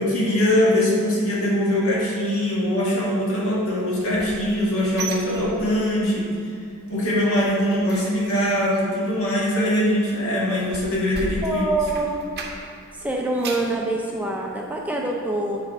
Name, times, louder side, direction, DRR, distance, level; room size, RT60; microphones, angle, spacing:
voice 1, 0.0-6.3 6.9-11.6, left 1 dB, 65° left, -5 dB, 1.6 m, -22 dB
sound 1, 3.8-6.1 6.4-6.8 7.1-12.9 13.2-13.8 14.3-14.4 14.8-14.9, right 3 dB, 50° right, 0.8 m, -36 dB
voice 2, 11.4-12.1 13.0-15.6, right 2 dB, 5° right, -1 dB, 0.4 m, -25 dB
7.6 x 3.5 x 5.3 m, 2.2 s
head